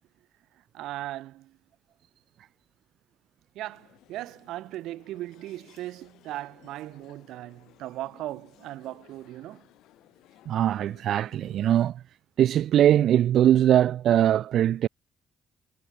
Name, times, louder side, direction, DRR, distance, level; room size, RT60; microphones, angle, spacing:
voice 1, 0.7-1.6 3.6-9.7, right 15 dB, 90° right, 1.9 m, -38 dB
sound 1, 3.6-11.9, left 15 dB, 90° left, 7.3 m, -58 dB
voice 2, 10.5-12.0 12.4-14.9, right 11 dB, 70° right, 0.5 m, -21 dB
cardioid pair, 90°, 0 cm